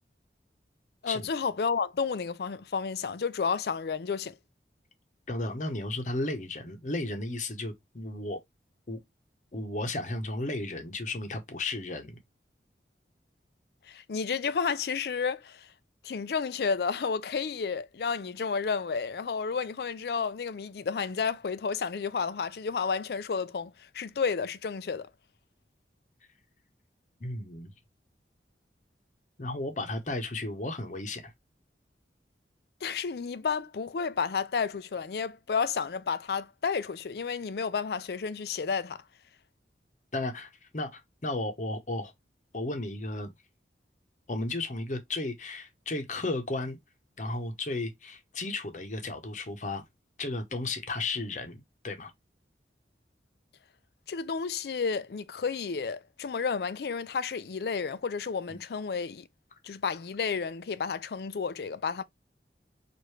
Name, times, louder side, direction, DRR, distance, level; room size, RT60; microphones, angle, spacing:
voice 1, 1.0-4.3 13.9-15.7 16.0-25.1 32.8-39.0 54.1-59.3 59.6-62.0, left 5 dB, 60° left, 0.4 m, -31 dB
voice 2, 5.3-8.4 8.9-9.0 9.5-12.2 27.2-27.7 29.4-31.3 40.1-42.1 42.5-43.3 44.3-46.8 47.2-49.8 50.2-52.1 58.5-58.6, left 2 dB, 45° left, 0.9 m, -34 dB
4.7 x 2.6 x 3.2 m
head